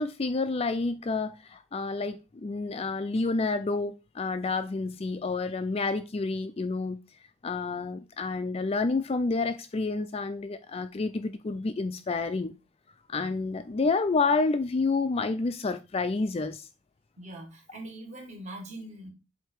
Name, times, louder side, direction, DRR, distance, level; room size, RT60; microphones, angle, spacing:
voice 1, 0.0-7.0 7.4-12.5 13.1-16.7, left 3 dB, 30° left, 0.3 m, -29 dB
voice 2, 17.2-19.1, right 1 dB, 35° right, 1.8 m, -42 dB
7.9 x 2.8 x 4.5 m
head